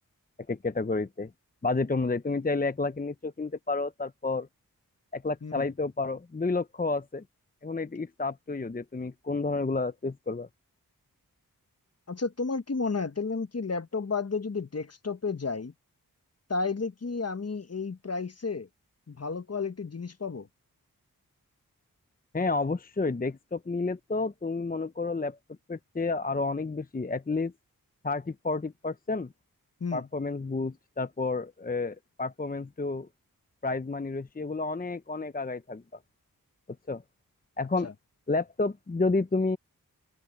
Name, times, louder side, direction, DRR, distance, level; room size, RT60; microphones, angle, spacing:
voice 1, 0.5-1.3 1.6-4.5 5.1-7.2 7.6-10.5 22.3-25.4 25.7-27.5 28.0-29.3 29.9-33.1 33.6-35.8 36.9-37.0 37.6-37.9 38.3-39.6, left 3 dB, 25° left, 0.8 m, -30 dB
voice 2, 12.1-15.7 16.5-18.7 19.1-20.5 29.8-30.1 37.8-37.9, left 4 dB, 45° left, 1.3 m, -32 dB
open air
cardioid pair, 40°, 36 cm